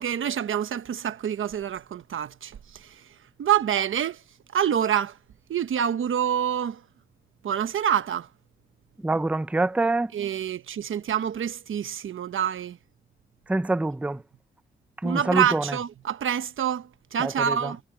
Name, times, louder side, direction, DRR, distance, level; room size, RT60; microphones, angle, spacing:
voice 1, 0.0-3.1 3.4-4.2 4.5-5.2 5.5-6.8 7.4-8.3 10.1-12.8 15.0-17.8, right 9 dB, 80° right, 1.1 m, -27 dB
voice 2, 9.0-10.1 13.5-14.2 15.0-15.6 17.2-17.7, right 2 dB, 5° right, 0.4 m, -25 dB
cardioid pair, 70°, 20 cm